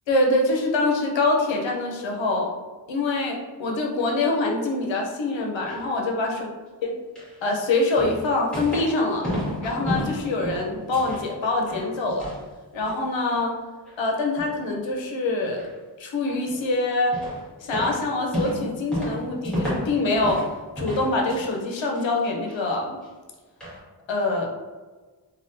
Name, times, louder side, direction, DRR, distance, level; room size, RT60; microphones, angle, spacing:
voice 1, 0.1-2.6 2.9-6.5 6.8-6.9 7.4-9.3 9.6-12.3 12.7-13.5 14.0-15.6 16.0-17.2 17.6-20.4 20.8-23.0 24.1-24.5, left 2 dB, 85° left, 0 dB, 0.7 m, -24 dB
sound 1, 5.3-5.8 7.1-7.4 8.0-9.0 9.2-11.3 11.6-12.4 12.8-13.4 13.9-14.0 14.4-14.6 15.6-15.7 16.2-16.7 17.1-17.5 17.7-20.5 20.8-21.7 21.9-22.6 23.0-23.1 23.6-23.8, equal, ahead, 1.4 m, -32 dB
3.5 x 2.3 x 2.6 m, 1.3 s
wide cardioid pair, 110°, 44 cm